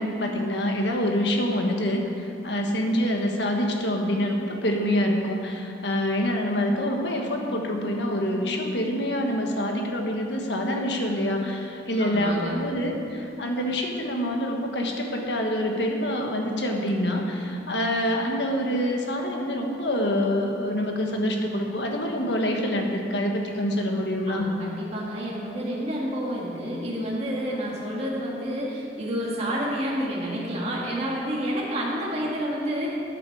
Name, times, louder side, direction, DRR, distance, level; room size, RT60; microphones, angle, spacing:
voice 1, 0.0-24.5, equal, 70° left, 2 dB, 1.5 m, -26 dB
voice 2, 12.0-12.6 24.3-32.9, equal, 35° right, -5 dB, 1.9 m, -29 dB
14.0 x 9.3 x 4.7 m, 2.6 s
head